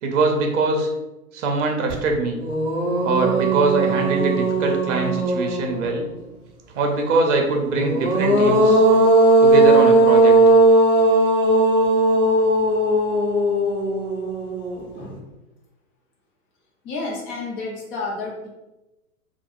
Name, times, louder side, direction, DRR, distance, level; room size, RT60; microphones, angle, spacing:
voice 1, 0.0-0.9 1.3-2.4 3.0-6.0 6.7-8.8 9.4-10.3, right 3 dB, 55° right, 3 dB, 0.7 m, -22 dB
sound 1, 1.9-2.0 2.4-6.0 7.7-15.0, right 2 dB, 15° right, 0.7 m, -17 dB
voice 2, 16.8-18.5, left 3 dB, 20° left, -1 dB, 0.5 m, -30 dB
2.3 x 2.1 x 3.1 m, 1.0 s
figure-of-eight pair, 110°, 44 cm